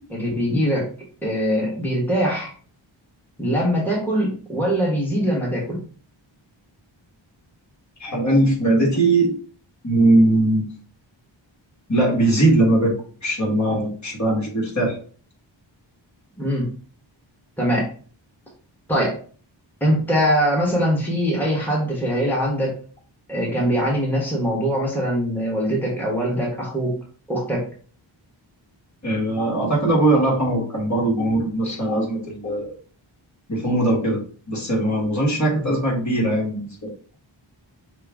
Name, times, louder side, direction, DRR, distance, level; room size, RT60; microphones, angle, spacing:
voice 1, 0.1-0.9 1.2-2.5 3.4-5.8 16.4-16.7 17.6-17.9 18.9-19.2 19.8-22.7 23.3-27.0 27.3-27.6 35.5-35.8, equal, 5° left, -4 dB, 1.4 m, -22 dB
voice 2, 8.0-9.3 9.8-10.6 11.9-12.9 13.2-15.0 29.0-32.7 33.5-34.2 34.5-36.9, right 1 dB, 35° left, -3 dB, 1.7 m, -20 dB
5.7 x 2.3 x 3.6 m, 0.43 s
wide cardioid pair, 85°, 47 cm